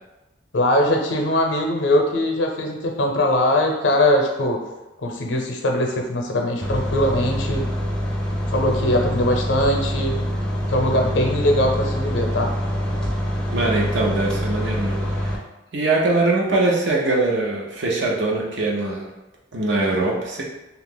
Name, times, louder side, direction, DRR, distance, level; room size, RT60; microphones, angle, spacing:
voice 1, 0.5-4.6 5.0-7.7 8.5-10.3 10.7-12.6, left 1 dB, 80° left, 2 dB, 0.6 m, -21 dB
sound 1, 6.6-15.4, equal, 5° left, 0.4 m, -25 dB
voice 2, 13.5-15.0 15.2-15.4 15.7-19.0 19.5-20.4, right 2 dB, 80° right, -2 dB, 0.7 m, -22 dB
2.8 x 2.4 x 3.8 m, 1.0 s
head